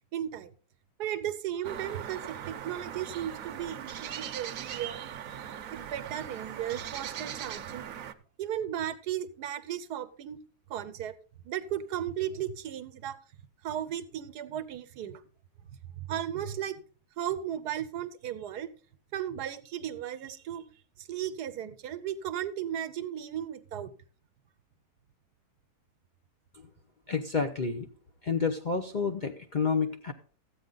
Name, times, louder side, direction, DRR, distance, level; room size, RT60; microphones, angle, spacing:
voice 1, 0.1-0.5 1.0-5.0 5.7-7.9 8.4-10.4 10.7-11.1 11.4-13.2 13.6-15.2 16.0-16.8 17.2-18.7 19.1-20.6 21.0-23.9, right 10 dB, 85° right, 12 dB, 1.3 m, -35 dB
sound 1, 1.6-8.1, right 9 dB, 65° right, 1.0 m, -40 dB
voice 2, 27.1-27.9 28.2-30.1, left 5 dB, 45° left, 5 dB, 0.6 m, -29 dB
13.5 x 8.6 x 3.9 m, 0.41 s
omnidirectional pair, 1.7 m